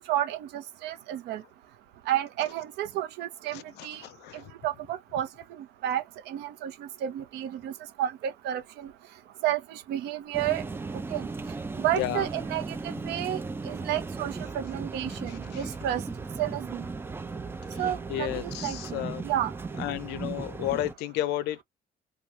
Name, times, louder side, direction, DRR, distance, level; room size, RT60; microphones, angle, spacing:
voice 1, 0.0-1.4 2.1-4.0 4.6-5.3 5.6-7.7 8.0-8.9 9.4-10.6 11.1-11.3 11.8-13.4 13.7-16.0 16.4-16.8 17.8-19.5, right 12 dB, 80° right, 0.7 m, -31 dB
voice 2, 3.5-4.5 12.0-12.3 15.1-15.7 17.7-17.8 18.1-19.2 19.8-21.6, left 14 dB, 80° left, 0.5 m, -33 dB
sound 1, 10.3-20.9, right 4 dB, 15° right, 0.4 m, -36 dB
2.9 x 2.3 x 2.4 m
cardioid pair, 110°, 17 cm